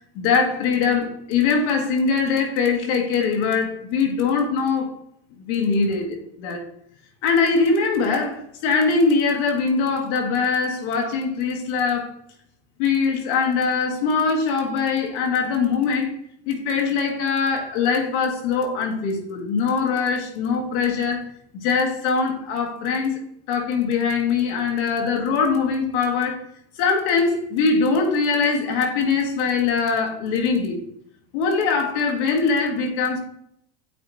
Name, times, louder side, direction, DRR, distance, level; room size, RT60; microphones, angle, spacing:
voice 1, 0.1-4.9 5.4-6.6 7.2-12.1 12.8-16.1 16.5-21.3 21.6-23.2 23.5-26.4 26.8-30.8 31.3-33.2, left 5 dB, 75° left, 2 dB, 1.6 m, -22 dB
8.3 x 3.0 x 4.1 m, 0.71 s
cardioid pair, 170°, 35 cm